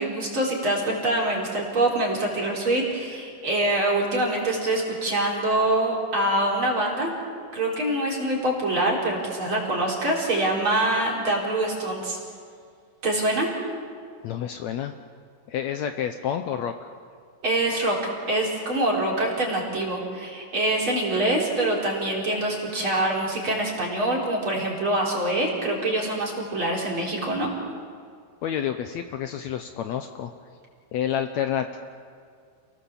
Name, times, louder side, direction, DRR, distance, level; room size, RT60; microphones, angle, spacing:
voice 1, 0.0-7.1 7.5-12.2 13.0-13.5 17.4-18.0 18.3-27.5, right 1 dB, 35° right, -3 dB, 4.7 m, -25 dB
voice 2, 14.2-14.9 15.5-16.8 28.4-30.3 30.9-31.8, left 9 dB, 90° left, 7 dB, 1.5 m, -29 dB
29.0 x 18.0 x 7.3 m, 2.2 s
omnidirectional pair, 4.2 m